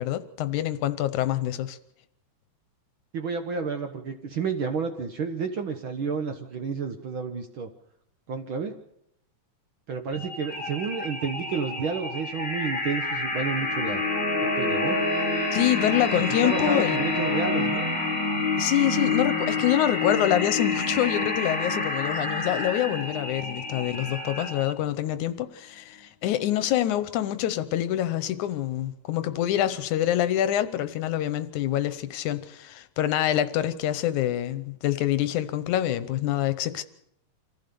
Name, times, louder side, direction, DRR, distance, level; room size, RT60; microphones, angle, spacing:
voice 1, 0.0-1.8 15.5-17.0 17.7-17.8 18.6-36.8, left 12 dB, 80° left, 2.3 m, -26 dB
voice 2, 3.1-7.7 8.3-8.7 9.9-14.0 14.6-15.0 16.3-17.9, right 5 dB, 55° right, 1.5 m, -30 dB
sound 1, 10.1-24.7, left 2 dB, 5° left, 3.5 m, -31 dB
sound 2, 13.2-24.5, left 3 dB, 35° left, 7.1 m, -30 dB
25.5 x 15.0 x 6.9 m
omnidirectional pair, 3.4 m